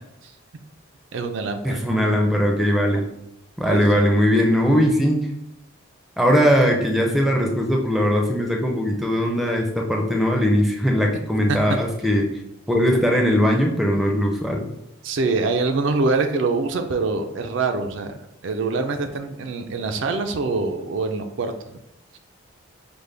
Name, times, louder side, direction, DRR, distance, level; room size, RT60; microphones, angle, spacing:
voice 1, 1.1-1.8 3.7-4.0 11.5-11.6 15.0-18.2 18.4-21.8, right 3 dB, 65° right, 7 dB, 0.4 m, -24 dB
voice 2, 1.6-3.1 3.6-5.3 6.2-12.3 12.7-14.6, equal, ahead, 1 dB, 0.4 m, -20 dB
5.1 x 2.1 x 3.2 m, 0.85 s
head